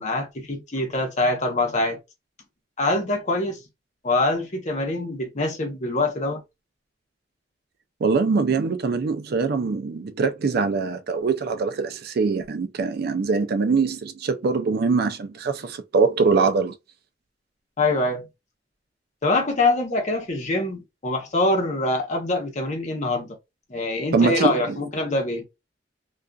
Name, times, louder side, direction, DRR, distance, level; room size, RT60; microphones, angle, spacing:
voice 1, 0.0-2.0 2.8-3.6 4.0-6.4 17.8-18.3 19.2-23.4 23.7-25.4, left 2 dB, 40° left, 0.8 m, -24 dB
voice 2, 8.0-16.8 24.1-24.8, right 4 dB, 60° right, 0.4 m, -23 dB
2.5 x 2.4 x 2.2 m
head